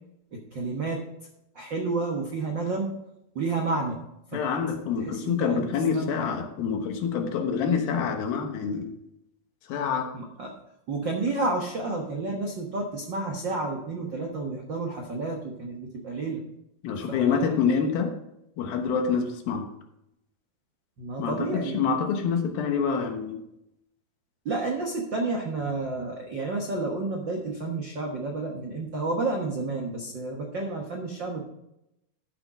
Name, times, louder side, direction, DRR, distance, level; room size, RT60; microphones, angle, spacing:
voice 1, 0.3-1.0 1.5-2.9 3.3-4.0 4.3-4.4 5.0-6.1 10.1-10.5 10.9-16.4 17.1-17.6 21.0-21.8 24.4-31.4, right 3 dB, 75° right, 1 dB, 1.0 m, -30 dB
voice 2, 4.3-8.9 9.7-10.1 16.8-18.1 18.6-19.6 21.2-23.4, left 6 dB, 90° left, 4 dB, 3.1 m, -26 dB
13.0 x 6.1 x 3.9 m, 0.83 s
omnidirectional pair, 4.1 m